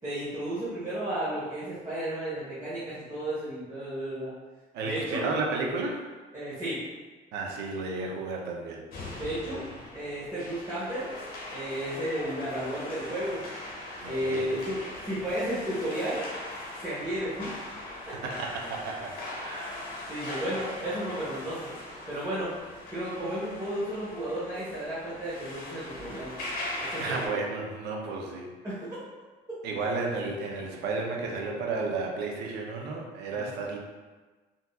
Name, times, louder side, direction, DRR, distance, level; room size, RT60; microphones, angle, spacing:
voice 1, 0.0-4.3 4.8-5.3 6.3-6.8 9.1-11.1 11.5-13.4 14.0-16.3 16.8-17.6 18.1-18.2 20.1-21.7 22.1-22.5 22.9-26.3 26.8-27.4 28.6-29.0 33.3-33.5, right 1 dB, 20° right, -11 dB, 1.1 m, -33 dB
voice 2, 4.7-6.1 7.3-8.8 14.0-14.5 18.2-19.2 19.4-19.7 27.0-28.5 29.6-33.8, right 3 dB, 85° right, 0 dB, 0.5 m, -32 dB
sound 1, 8.9-27.3, left 1 dB, 60° left, 0.9 m, -40 dB
3.5 x 2.7 x 2.2 m, 1.3 s
cardioid pair, 110°, 17 cm